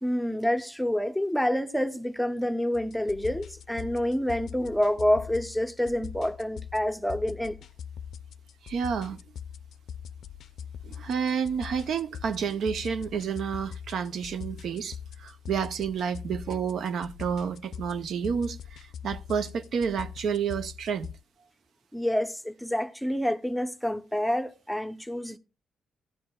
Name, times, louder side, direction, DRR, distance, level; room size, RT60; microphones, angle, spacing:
voice 1, 0.0-7.6 21.9-25.4, left 1 dB, ahead, 0.6 m, -28 dB
sound 1, 2.7-21.1, left 8 dB, 75° left, 0.4 m, -42 dB
voice 2, 8.6-9.2 10.8-21.1, right 7 dB, 75° right, 0.5 m, -30 dB
14.5 x 10.5 x 2.2 m
cardioid pair, 95°, 0 cm